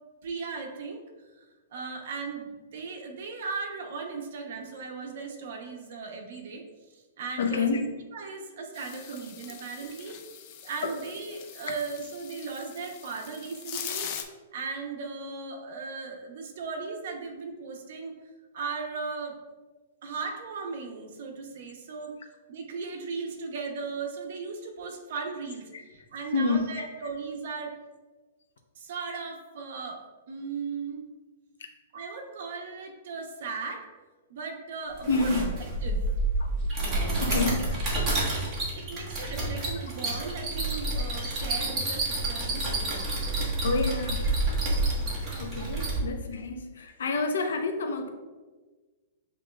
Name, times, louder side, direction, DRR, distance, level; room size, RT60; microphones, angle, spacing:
voice 1, 0.2-1.0 1.7-6.6 6.9-7.7 8.1-10.2 10.6-14.1 14.5-18.1 18.5-19.4 20.0-22.1 22.5-27.7 28.8-31.0 31.9-33.9 34.3-35.4 35.8-36.0 36.8-37.6 38.0-38.5 38.7-43.1, right 4 dB, 60° right, 3 dB, 0.7 m, -37 dB
voice 2, 7.4-7.9 25.7-25.8 26.3-26.9 35.1-35.5 36.4-36.5 37.2-37.8 43.6-44.3 45.4-48.1, left 3 dB, 85° left, 5 dB, 0.6 m, -28 dB
sound 1, 8.7-14.2, left 9 dB, 35° left, 0.4 m, -41 dB
sound 2, 35.0-46.0, right 2 dB, 15° right, 1.3 m, -29 dB
7.6 x 3.0 x 2.3 m, 1.3 s
hypercardioid pair, 165°, 0 cm